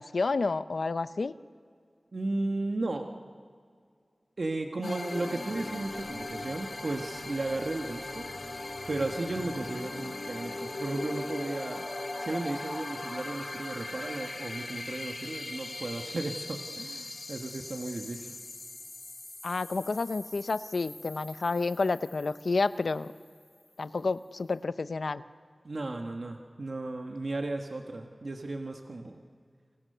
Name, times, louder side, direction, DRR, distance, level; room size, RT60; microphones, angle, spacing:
voice 1, 0.0-1.3 4.8-4.9 19.4-23.1 23.8-25.2, left 3 dB, 80° left, 12 dB, 0.7 m, -30 dB
voice 2, 2.1-3.1 4.4-8.3 8.9-11.9 12.2-18.4 25.6-29.2, right 2 dB, 65° right, 3 dB, 1.5 m, -35 dB
sound 1, 4.8-23.3, left 2 dB, 55° left, 3.1 m, -40 dB
30.0 x 25.5 x 6.8 m, 2.2 s
wide cardioid pair, 60°, 0 cm